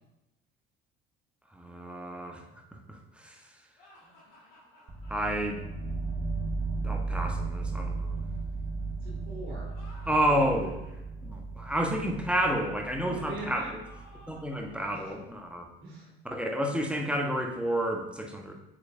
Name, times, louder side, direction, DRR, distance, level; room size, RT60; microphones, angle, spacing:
voice 1, 1.5-3.4 5.1-5.6 6.8-8.2 10.1-10.7 11.2-13.6 14.3-15.7 16.2-18.5, right 1 dB, 5° right, 1 dB, 1.1 m, -30 dB
sound 1, 3.8-5.5 9.6-11.0 13.8-15.3, left 1 dB, 70° left, 2.1 m, -56 dB
sound 2, 4.9-14.7, right 3 dB, 40° right, 1.2 m, -35 dB
voice 2, 9.0-9.7 10.0-10.5 11.6-11.7 13.0-13.7 15.8-16.1, right 2 dB, 70° right, -6 dB, 2.0 m, -42 dB
7.3 x 6.2 x 2.6 m, 0.93 s
figure-of-eight pair, 55°, 30 cm